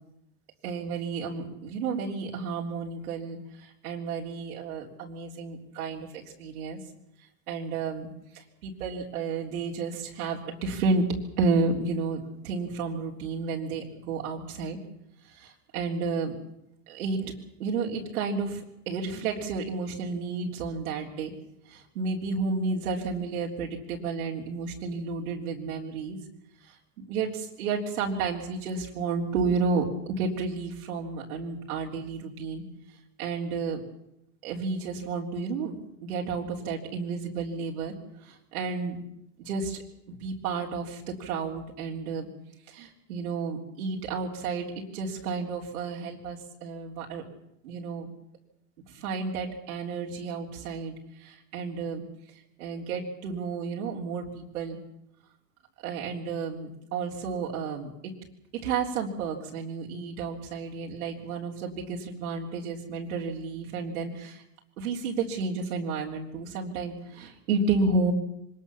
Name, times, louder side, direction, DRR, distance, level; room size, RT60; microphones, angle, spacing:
voice 1, 0.6-6.8 7.5-11.1 11.4-14.8 15.2-16.4 16.9-17.3 17.6-21.3 21.7-26.2 26.6-32.6 33.2-33.8 34.4-39.0 39.4-39.8 40.1-42.3 42.7-47.2 47.6-48.1 48.9-52.0 52.3-54.8 55.8-58.1 58.5-64.4 64.8-68.1, right 4 dB, 75° right, -2 dB, 3.6 m, -31 dB
24.5 x 20.0 x 7.1 m, 0.80 s
hypercardioid pair, 105°, 44 cm